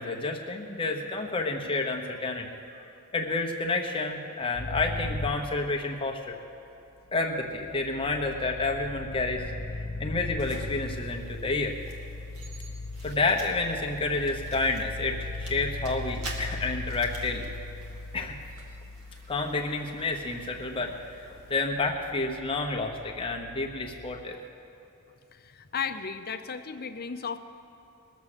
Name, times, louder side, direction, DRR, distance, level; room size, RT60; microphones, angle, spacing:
voice 1, 0.0-2.5 3.1-6.4 7.1-11.8 13.0-17.5 18.1-18.4 19.3-24.4, left 3 dB, 25° left, 1 dB, 1.0 m, -30 dB
sound 1, 4.5-6.3 7.3-24.2, left 2 dB, 70° left, 0.9 m, -39 dB
sound 2, 10.4-21.6, right 2 dB, 85° right, 1.9 m, -48 dB
voice 2, 25.3-27.4, left 6 dB, 45° left, 8 dB, 0.7 m, -35 dB
20.5 x 7.3 x 6.7 m, 2.8 s
head